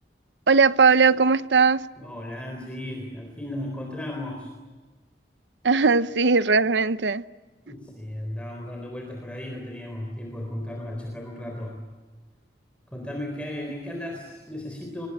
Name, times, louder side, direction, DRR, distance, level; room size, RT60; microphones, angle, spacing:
voice 1, 0.5-1.9 5.6-7.2, right 4 dB, 80° right, 0.8 m, -19 dB
voice 2, 2.0-4.5 7.7-11.8 12.9-15.1, left 1 dB, 5° left, 3.8 m, -35 dB
25.0 x 22.5 x 9.8 m
head